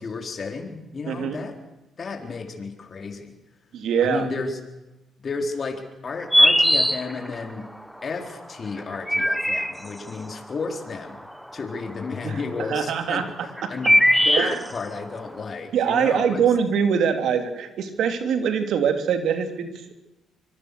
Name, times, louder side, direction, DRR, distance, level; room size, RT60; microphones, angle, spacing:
voice 1, 0.0-1.6 2.0-3.3 4.0-4.6 5.2-7.7 8.0-11.3 11.5-13.3 13.7-16.4, left 4 dB, 45° left, 4 dB, 3.9 m, -32 dB
voice 2, 1.1-1.4 3.7-4.3 12.2-12.4 12.7-13.3 13.6-13.7 14.4-14.6 15.7-19.7, right 7 dB, 70° right, 7 dB, 2.8 m, -23 dB
sound 1, 6.1-7.5 8.8-10.1 11.3-12.0 13.0-15.0, equal, ahead, 1.3 m, -19 dB
25.0 x 21.5 x 6.7 m, 0.97 s
hypercardioid pair, 50°, 0 cm